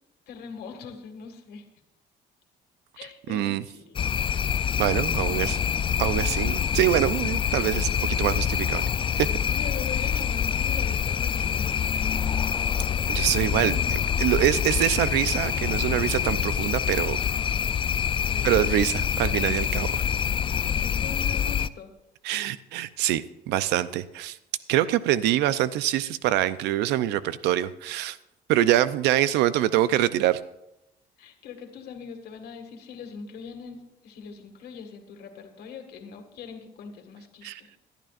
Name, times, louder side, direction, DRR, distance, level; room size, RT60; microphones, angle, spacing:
voice 1, 0.3-1.7 2.9-4.0 5.0-5.6 9.5-11.9 18.2-18.8 20.6-21.9 31.2-37.7, left 6 dB, 70° left, 4 dB, 2.0 m, -41 dB
voice 2, 3.3-3.6 4.8-5.6 6.0-8.9 9.2-9.4 13.1-17.2 18.4-20.0 22.2-24.4 24.7-28.2 28.5-30.4 37.4-37.6, right 13 dB, 90° right, 15 dB, 0.6 m, -25 dB
sound 1, 4.0-21.7, left 8 dB, 30° left, 0.4 m, -26 dB
19.5 x 12.0 x 2.5 m, 0.86 s
cardioid pair, 110°, 17 cm